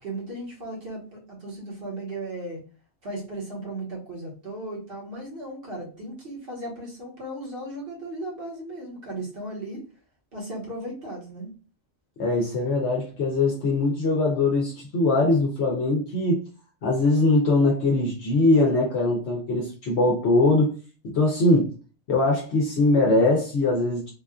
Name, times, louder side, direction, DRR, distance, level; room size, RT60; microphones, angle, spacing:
voice 1, 0.0-2.6 3.0-9.9 10.3-11.5, right 1 dB, 50° right, -3 dB, 1.5 m, -36 dB
voice 2, 12.2-16.4 16.8-20.8 21.0-21.7 22.1-24.1, left 2 dB, 65° left, -1 dB, 1.0 m, -21 dB
3.5 x 2.4 x 2.3 m, 0.35 s
omnidirectional pair, 1.2 m